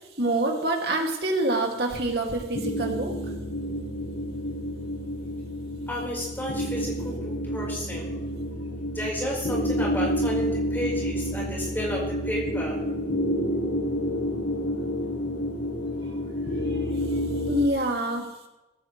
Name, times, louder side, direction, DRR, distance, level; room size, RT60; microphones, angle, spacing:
voice 1, 0.2-3.1 16.7-17.1 17.5-18.2, right 2 dB, 60° right, 1 dB, 2.7 m, -26 dB
sound 1, 2.5-17.7, equal, 85° left, 1.8 m, -29 dB
voice 2, 5.9-8.1 8.9-12.8, equal, 10° left, -3 dB, 5.0 m, -32 dB
18.0 x 15.5 x 3.4 m, 1.0 s
head